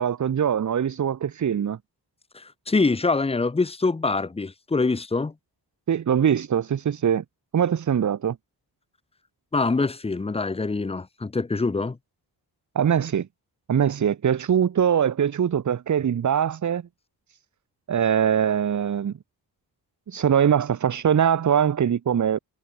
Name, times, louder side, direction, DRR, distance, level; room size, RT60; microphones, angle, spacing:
voice 1, 0.0-1.8 5.9-7.2 7.5-8.4 12.7-13.3 13.7-16.8 17.9-19.1 20.1-22.4, right 8 dB, 50° right, 0.9 m, -22 dB
voice 2, 2.3-5.3 9.5-12.0, left 3 dB, 15° left, 0.7 m, -24 dB
wide cardioid pair, 175°, 39 cm